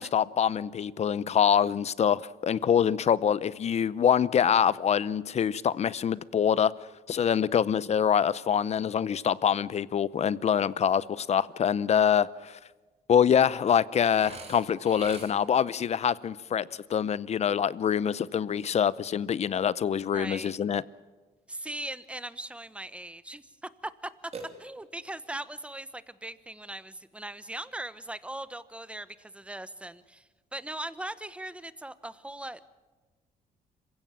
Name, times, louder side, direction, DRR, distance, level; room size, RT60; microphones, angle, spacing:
voice 1, 0.0-6.7 7.1-12.6 13.1-20.8, left 8 dB, 45° left, 0.7 m, -25 dB
Burping eructation, 13.9-15.7 24.3-25.1, right 4 dB, 40° right, 3.4 m, -44 dB
voice 2, 20.0-20.6 21.5-23.5 23.8-23.9 24.6-32.6, right 1 dB, 5° right, 1.0 m, -39 dB
26.5 x 16.0 x 7.5 m
cardioid pair, 115°, 16 cm